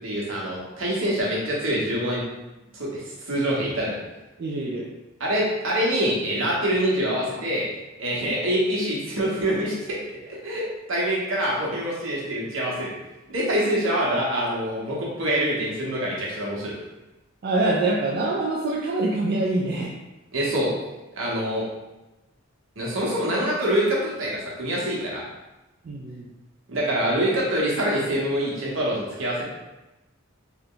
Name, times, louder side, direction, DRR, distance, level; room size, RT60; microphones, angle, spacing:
voice 1, 0.0-2.2 2.7-4.0 5.2-7.7 8.0-10.2 10.4-12.9 13.3-16.7 20.3-20.7 21.1-21.6 22.8-25.2 26.7-29.4, equal, 75° right, -4 dB, 1.1 m, -25 dB
voice 2, 4.4-4.9 17.4-19.9 25.8-26.2, right 2 dB, 50° right, -3 dB, 0.4 m, -25 dB
3.5 x 2.2 x 3.7 m, 1.0 s
head